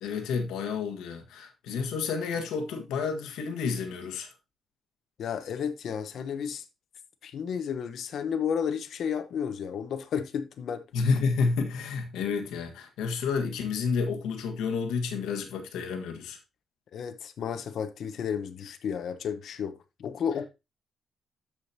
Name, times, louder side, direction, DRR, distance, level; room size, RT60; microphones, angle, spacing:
voice 1, 0.0-4.3 10.9-16.4, left 5 dB, 90° left, 1.6 m, -30 dB
voice 2, 5.2-6.6 7.2-10.8 16.9-20.5, left 7 dB, 65° left, 1.0 m, -32 dB
13.5 x 5.1 x 2.8 m
cardioid pair, 90°, 0 cm